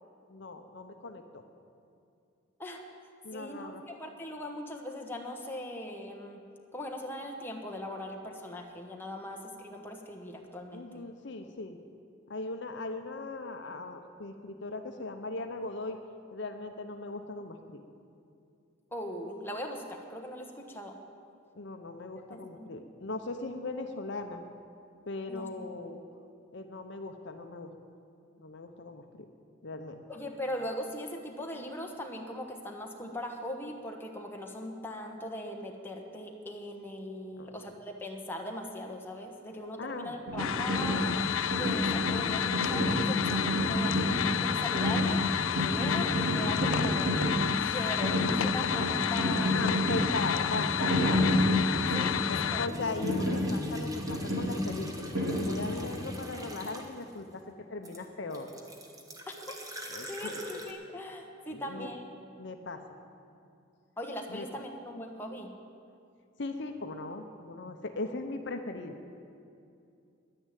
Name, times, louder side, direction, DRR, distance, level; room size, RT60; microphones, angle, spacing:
voice 1, 0.3-1.4 3.2-3.8 10.7-11.8 12.3-16.0 16.3-17.8 21.5-24.4 25.1-26.0 26.5-27.7 28.4-29.2 29.6-30.0 37.4-37.6 39.8-40.2 43.5-43.8 49.5-51.3 51.9-52.0 52.3-58.5 59.9-60.4 60.9-61.0 61.5-61.9 62.4-62.9 64.3-64.5 66.4-69.0, left 3 dB, 60° left, 6 dB, 0.8 m, -39 dB
voice 2, 3.3-6.4 6.7-11.0 18.9-21.0 22.3-22.8 25.3-25.5 30.1-41.0 41.5-43.9 44.2-45.2 45.5-47.1 47.5-49.8 50.8-51.2 51.9-52.7 59.3-59.4 60.1-62.0 64.0-65.5, left 1 dB, 10° left, 1 dB, 1.2 m, -40 dB
sound 1, 40.3-56.0, equal, 80° right, 4.1 m, -30 dB
sound 2, 40.4-52.7, left 10 dB, 80° left, 0.4 m, -31 dB
sound 3, 52.7-57.1 57.8-60.7, left 1 dB, 15° right, 1.1 m, -42 dB
10.5 x 10.0 x 9.2 m, 2.5 s
head